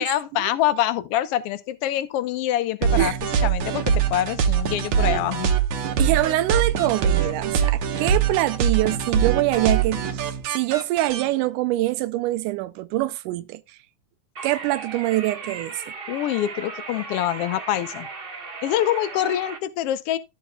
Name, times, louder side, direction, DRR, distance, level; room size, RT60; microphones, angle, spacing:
voice 1, 0.0-3.1 3.4-5.6 16.1-18.1 18.6-20.2, left 12 dB, 75° left, 1.4 m, -25 dB
sound 1, 2.8-11.2, right 8 dB, 70° right, 2.7 m, -23 dB
voice 2, 6.0-13.8 14.4-15.8, right 16 dB, 90° right, 2.1 m, -24 dB
sound 2, 14.3-19.6, right 4 dB, 55° right, 0.6 m, -37 dB
14.0 x 6.8 x 2.3 m
omnidirectional pair, 3.6 m